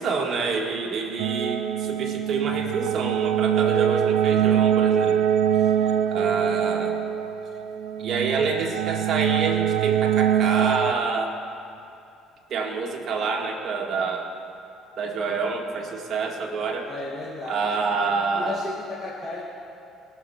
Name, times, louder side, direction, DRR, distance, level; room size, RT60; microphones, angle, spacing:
voice 1, 0.0-5.2 5.8-7.0 8.0-11.4 12.5-14.3 15.0-16.9 17.5-18.6, right 4 dB, 50° right, 0 dB, 2.0 m, -27 dB
sound 1, 1.2-10.9, right 9 dB, 80° right, 0.6 m, -23 dB
voice 2, 16.9-17.9 18.3-19.4, left 2 dB, 25° left, -6 dB, 2.2 m, -34 dB
19.0 x 6.7 x 5.9 m, 2.7 s
cardioid pair, 95°, 0 cm